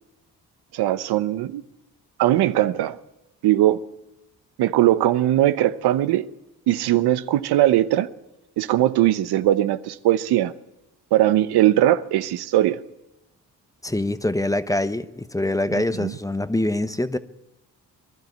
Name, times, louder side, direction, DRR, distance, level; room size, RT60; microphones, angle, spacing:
voice 1, 0.7-1.6 2.2-3.0 3.4-3.9 4.6-6.3 6.7-8.1 8.6-10.5 11.1-12.8 15.7-16.1, right 13 dB, 80° right, 0.9 m, -20 dB
voice 2, 13.8-17.2, left 1 dB, 10° left, 1.1 m, -24 dB
23.0 x 12.0 x 9.5 m
supercardioid pair, 65°, 38 cm